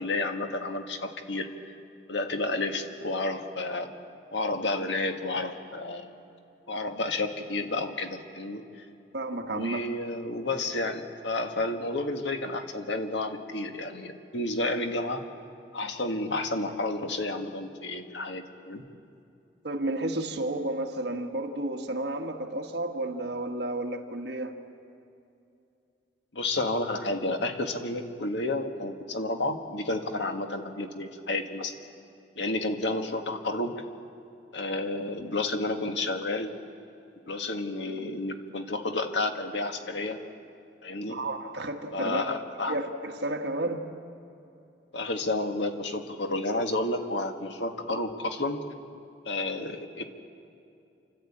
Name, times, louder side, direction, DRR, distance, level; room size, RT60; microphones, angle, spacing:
voice 1, 0.0-1.7 2.1-3.9 4.3-6.1 6.7-8.9 9.5-15.2 15.7-18.8 26.3-31.7 32.4-33.7 34.5-36.5 37.3-40.2 40.8-41.2 41.9-42.8 44.9-48.6 49.3-50.0, left 2 dB, 90° left, 5 dB, 1.7 m, -31 dB
voice 2, 9.1-9.8 19.6-24.5 41.1-42.2 42.7-43.9, right 1 dB, 65° right, 3 dB, 1.6 m, -32 dB
29.0 x 12.0 x 8.7 m, 2.7 s
head